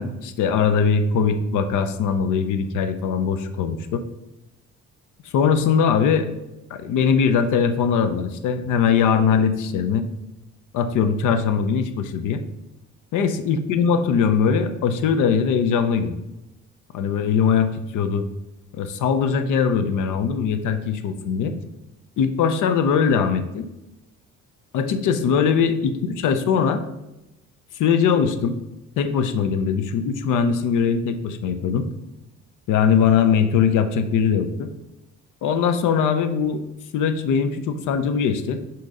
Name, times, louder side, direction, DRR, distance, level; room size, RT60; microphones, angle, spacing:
voice 1, 0.0-4.0 5.3-6.3 6.7-10.0 10.7-12.4 13.1-16.2 16.9-18.3 18.8-21.6 22.2-23.6 24.7-26.8 27.8-28.6 29.0-31.9 32.7-34.7 35.4-36.6 36.9-38.6, left 6 dB, 85° left, 10 dB, 0.6 m, -21 dB
6.1 x 2.9 x 5.2 m, 0.94 s
cardioid pair, 90°, 30 cm